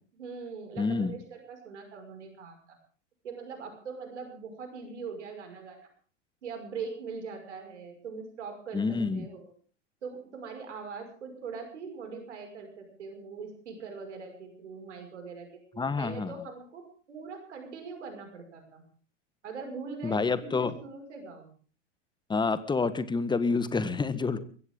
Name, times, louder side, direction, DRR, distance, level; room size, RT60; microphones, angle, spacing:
voice 1, 0.1-2.8 3.2-5.9 6.4-9.5 10.0-18.8 19.4-21.5, right 5 dB, 70° right, 4 dB, 5.8 m, -42 dB
voice 2, 0.8-1.1 8.7-9.3 15.8-16.3 20.0-20.7 22.3-24.4, left 4 dB, 10° left, 14 dB, 1.4 m, -28 dB
22.5 x 16.5 x 3.8 m, 0.42 s
figure-of-eight pair, 90°, 36 cm